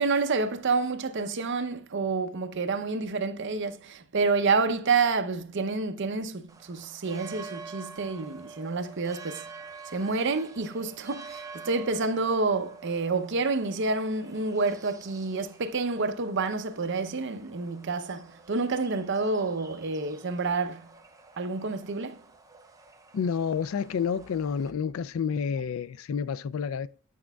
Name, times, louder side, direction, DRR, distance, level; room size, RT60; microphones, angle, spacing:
voice 1, 0.0-9.5 9.9-20.9 21.4-22.2, right 4 dB, 60° right, 0.7 m, -28 dB
sound 1, 6.5-24.7, right 4 dB, 15° right, 0.6 m, -48 dB
voice 2, 23.1-26.9, left 6 dB, 75° left, 0.4 m, -29 dB
9.0 x 6.2 x 2.3 m
head